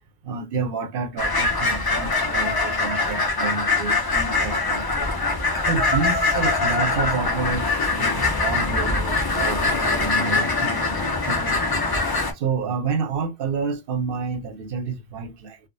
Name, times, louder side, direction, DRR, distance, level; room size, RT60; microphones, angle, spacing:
voice 1, 0.2-5.1 5.6-11.8 12.3-15.6, right 5 dB, 60° right, 0.7 m, -29 dB
sound 1, 1.2-12.3, left 3 dB, 35° left, 0.3 m, -23 dB
3.4 x 2.0 x 2.5 m
omnidirectional pair, 1.2 m